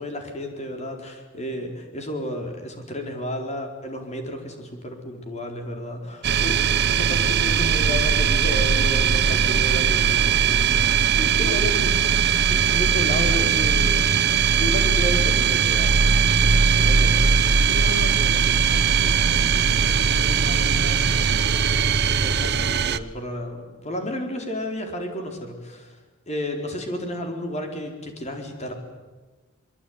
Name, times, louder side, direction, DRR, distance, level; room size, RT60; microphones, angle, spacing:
voice 1, 0.0-10.8 11.1-12.0 12.5-17.7 22.2-26.0 26.3-28.7, left 1 dB, 35° left, 4 dB, 4.5 m, -32 dB
sound 1, 6.2-23.0, right 6 dB, 60° right, 0.9 m, -20 dB
voice 2, 17.6-21.9, left 2 dB, 65° left, 8 dB, 1.6 m, -38 dB
24.0 x 22.5 x 9.6 m, 1.2 s
head